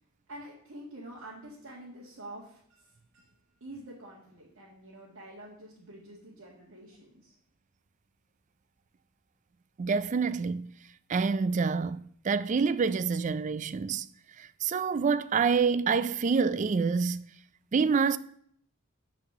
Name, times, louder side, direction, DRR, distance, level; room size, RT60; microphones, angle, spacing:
voice 1, 0.3-3.3 3.6-7.3, right 1 dB, 60° right, 1.8 m, -47 dB
voice 2, 9.8-10.7 11.1-14.1 14.4-17.2 17.7-18.2, right 5 dB, 35° right, 0.3 m, -27 dB
8.4 x 4.3 x 6.6 m
head